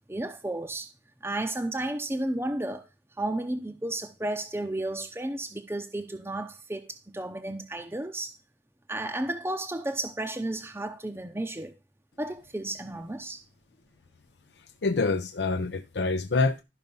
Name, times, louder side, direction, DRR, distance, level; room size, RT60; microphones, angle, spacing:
voice 1, 0.1-0.9 1.2-2.9 3.2-8.3 8.9-11.8 12.2-13.4, right 1 dB, 15° right, 0.7 m, -33 dB
voice 2, 14.8-16.6, left 3 dB, 75° left, 0.7 m, -26 dB
12.5 x 5.5 x 5.4 m
head